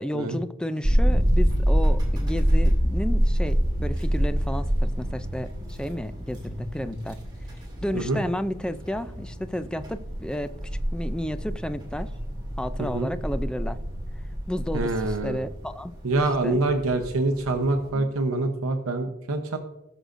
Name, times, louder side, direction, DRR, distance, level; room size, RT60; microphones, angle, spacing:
voice 1, 0.0-7.2 7.8-10.5 10.9-12.1 12.6-13.8 14.5-15.9 16.3-16.6 17.9-18.1, equal, 5° left, 12 dB, 0.3 m, -32 dB
sound 1, 0.8-17.9, equal, 20° right, 2.3 m, -27 dB
voice 2, 14.7-15.4 16.0-19.6, right 2 dB, 80° right, 5 dB, 0.8 m, -25 dB
19.0 x 6.5 x 2.5 m, 0.99 s
head